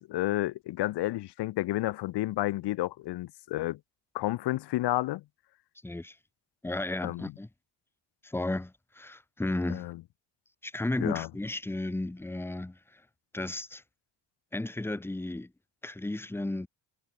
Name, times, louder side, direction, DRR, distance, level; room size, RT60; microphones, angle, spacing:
voice 1, 0.1-3.8 4.1-5.2 7.0-7.3 9.7-10.0 11.0-11.3, left 16 dB, 65° left, 0.7 m, -31 dB
voice 2, 5.8-6.2 6.6-7.5 8.2-9.9 10.6-13.0 13.3-13.8 14.5-15.5 15.8-16.7, left 2 dB, 5° left, 0.9 m, -34 dB
cardioid pair, 145°, 44 cm